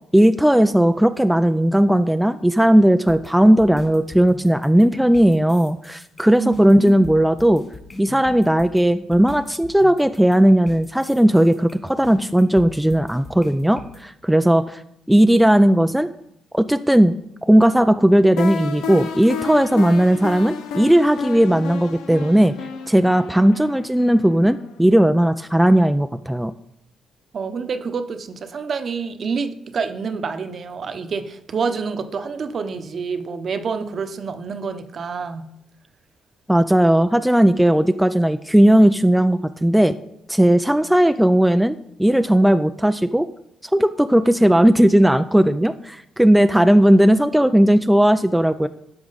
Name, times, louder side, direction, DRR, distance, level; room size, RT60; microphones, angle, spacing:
voice 1, 0.1-7.6 8.0-14.8 15.1-16.1 16.5-17.1 17.4-22.5 22.9-26.5 36.5-40.0 40.3-43.3 43.7-48.7, right 1 dB, 5° right, 9 dB, 0.3 m, -16 dB
sound 1, 3.1-14.0, left 2 dB, 35° left, 2.7 m, -41 dB
voice 2, 6.4-7.0 27.3-35.5, right 5 dB, 50° right, 8 dB, 0.8 m, -27 dB
sound 2, 18.4-25.1, left 6 dB, 90° left, 0.7 m, -32 dB
12.5 x 4.8 x 4.0 m, 0.77 s
cardioid pair, 90°, 0 cm